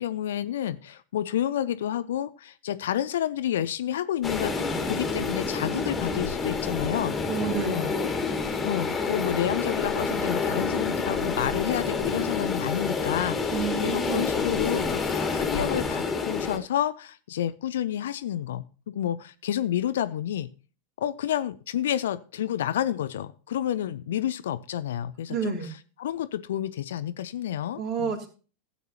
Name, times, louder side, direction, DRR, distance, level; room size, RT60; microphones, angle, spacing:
voice 1, 0.0-7.1 7.7-7.9 8.6-20.5 21.0-25.6 26.0-28.1, left 11 dB, 60° left, 15 dB, 0.6 m, -30 dB
sound 1, 4.2-16.6, left 4 dB, 15° left, 2.2 m, -28 dB
voice 2, 7.3-7.9 13.5-14.3 25.3-25.7 27.8-28.3, right 6 dB, 35° right, 5 dB, 2.7 m, -30 dB
15.5 x 8.4 x 2.8 m, 0.36 s
figure-of-eight pair, 90°, 0 cm